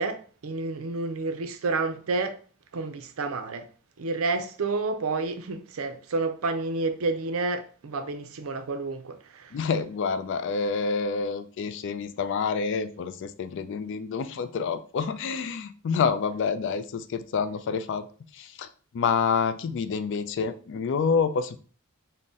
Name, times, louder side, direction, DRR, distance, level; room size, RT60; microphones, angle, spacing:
voice 1, 0.0-2.4 2.7-3.7 4.0-9.6, right 3 dB, 65° right, 0.5 m, -30 dB
voice 2, 9.5-18.1 18.3-18.7 18.9-21.6, left 5 dB, 55° left, 0.3 m, -28 dB
4.0 x 2.1 x 3.5 m
head